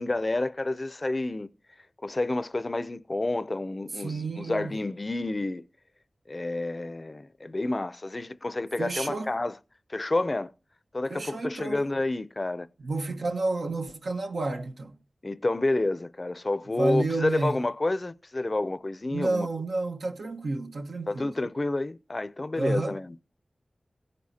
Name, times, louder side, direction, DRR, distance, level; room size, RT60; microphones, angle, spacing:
voice 1, 0.0-1.5 2.0-5.6 6.3-9.6 9.9-10.5 10.9-12.7 15.2-19.5 21.1-23.2, left 2 dB, 40° left, 0.5 m, -29 dB
voice 2, 4.0-4.7 8.8-9.3 11.1-11.8 12.8-15.0 16.7-17.6 19.1-21.3 22.6-23.0, right 2 dB, 85° right, 1.1 m, -30 dB
16.0 x 9.6 x 2.8 m
wide cardioid pair, 60°, 0 cm